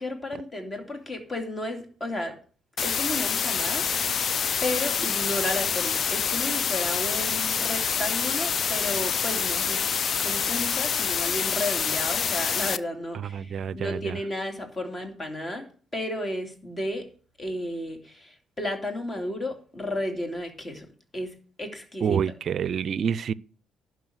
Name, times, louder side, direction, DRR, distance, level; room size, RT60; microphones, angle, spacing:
voice 1, 0.0-2.4 2.8-4.3 4.6-9.8 10.2-17.1 17.4-22.3, left 1 dB, 30° left, 2.8 m, -33 dB
sound 1, 2.8-12.8, left 6 dB, 55° left, 0.5 m, -26 dB
voice 2, 13.3-14.2 22.0-23.3, right 7 dB, 55° right, 0.4 m, -27 dB
11.5 x 4.8 x 8.0 m
hypercardioid pair, 55°, 0 cm